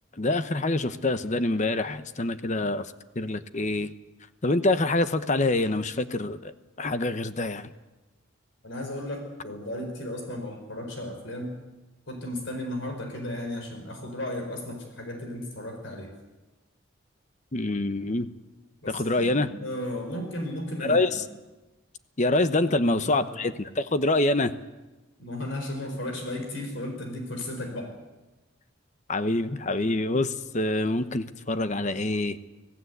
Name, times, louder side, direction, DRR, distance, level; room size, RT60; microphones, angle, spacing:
voice 1, 0.2-2.9 3.2-3.9 4.4-6.5 6.8-7.7 17.5-18.3 18.9-19.5 20.8-21.2 22.2-24.5 29.1-32.4, left 2 dB, 35° left, 11 dB, 0.9 m, -25 dB
voice 2, 8.6-11.6 12.1-16.1 18.8-21.1 22.6-23.3 25.2-27.9, left 1 dB, 65° left, 3 dB, 4.7 m, -35 dB
25.5 x 17.0 x 8.1 m, 1.1 s
head